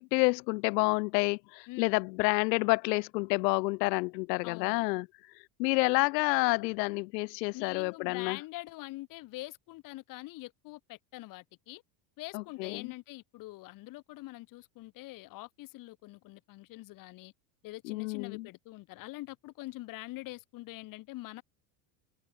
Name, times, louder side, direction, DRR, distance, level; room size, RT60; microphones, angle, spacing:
voice 1, 0.0-5.1 5.6-8.4 12.3-12.9 17.8-18.5, left 26 dB, 75° left, 1.1 m, -29 dB
voice 2, 1.7-2.0 4.4-4.9 7.5-11.8 12.2-17.3 17.6-21.4, left 19 dB, 40° left, 1.7 m, -44 dB
cardioid pair, 160°, 49 cm